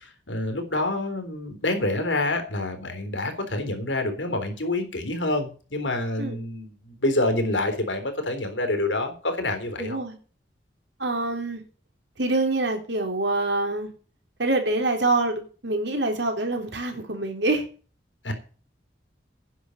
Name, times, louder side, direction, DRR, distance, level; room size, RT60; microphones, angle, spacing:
voice 1, 0.0-10.0 18.2-18.3, left 2 dB, 85° left, 6 dB, 3.6 m, -27 dB
voice 2, 9.8-10.2 11.0-11.6 12.2-13.9 14.4-17.6, right 2 dB, 70° right, 4 dB, 3.4 m, -25 dB
10.0 x 6.7 x 9.1 m, 0.37 s
head